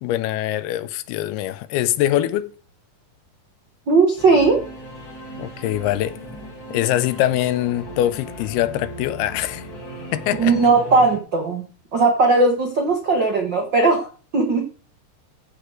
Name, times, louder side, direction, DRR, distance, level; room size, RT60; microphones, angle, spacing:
voice 1, 0.0-2.4 5.4-6.2 6.7-9.7 10.1-10.6, left 13 dB, 85° left, 2.7 m, -23 dB
voice 2, 3.9-4.6 10.4-11.6 11.9-14.7, right 3 dB, 65° right, 1.1 m, -18 dB
Singing / Musical instrument, 4.2-11.2, equal, 30° left, 2.3 m, -37 dB
14.5 x 5.1 x 6.4 m
omnidirectional pair, 4.5 m